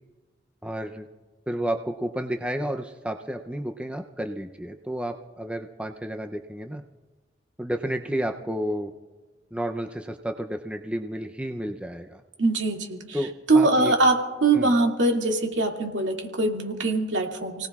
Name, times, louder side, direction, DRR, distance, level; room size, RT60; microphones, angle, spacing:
voice 1, 0.6-1.1 1.5-6.8 7.6-8.9 9.5-12.2 13.1-13.9 14.5-14.7, equal, 5° right, 4 dB, 0.5 m, -31 dB
voice 2, 12.4-13.2 13.5-17.7, right 2 dB, 75° right, 0 dB, 2.4 m, -22 dB
30.0 x 18.0 x 2.4 m, 1.3 s
head